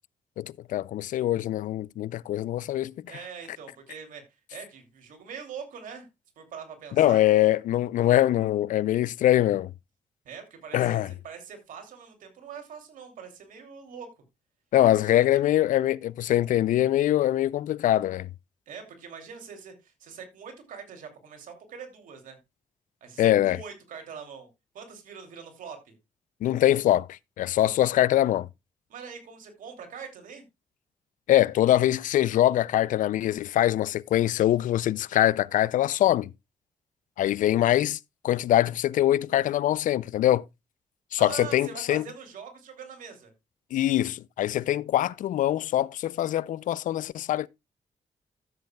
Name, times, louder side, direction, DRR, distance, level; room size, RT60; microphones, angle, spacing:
voice 1, 0.4-2.9 7.0-9.7 10.7-11.1 14.7-18.3 23.2-23.6 26.4-28.5 31.3-36.3 37.2-38.0 38.2-40.4 41.1-42.0 43.7-47.5, left 13 dB, 75° left, 0.4 m, -23 dB
voice 2, 3.1-4.2 4.5-6.1 6.4-7.2 10.2-14.1 15.0-15.4 18.7-22.4 23.0-24.5 24.7-25.9 28.9-30.4 41.2-43.3, right 6 dB, 80° right, 2.7 m, -43 dB
14.0 x 7.6 x 2.3 m
cardioid pair, 65°, 13 cm